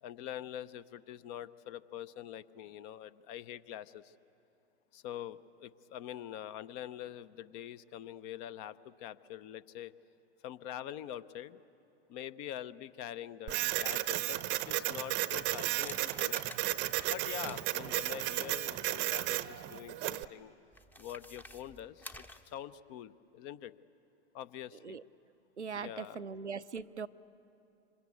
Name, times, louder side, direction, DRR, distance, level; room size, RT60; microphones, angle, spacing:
voice 1, 0.0-4.1 4.9-9.9 10.4-11.6 12.1-16.4 17.0-20.6 21.0-22.2 22.5-23.7 24.3-25.0 25.7-26.3, left 11 dB, 35° left, 15 dB, 0.7 m, -45 dB
Printer, 13.5-20.2, right 17 dB, 35° right, 0.8 m, -34 dB
sound 1, 15.3-19.3 20.7-22.6, left 1 dB, 5° left, 0.8 m, -51 dB
voice 2, 25.6-27.1, right 5 dB, 90° right, 14 dB, 0.7 m, -40 dB
26.0 x 26.0 x 8.4 m, 2.7 s
figure-of-eight pair, 100°, 33 cm